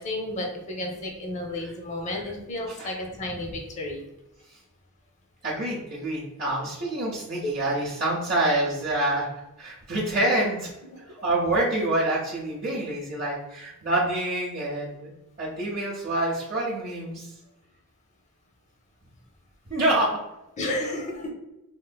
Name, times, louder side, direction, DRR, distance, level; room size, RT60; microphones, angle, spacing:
voice 1, 0.0-4.0 7.4-7.5 20.6-21.3, left 1 dB, 30° left, 1 dB, 0.6 m, -32 dB
voice 2, 5.4-9.3 9.6-10.7 11.2-15.1 15.4-17.3 19.7-20.1, right 1 dB, 40° right, -7 dB, 0.6 m, -26 dB
3.6 x 2.5 x 2.2 m, 0.96 s
head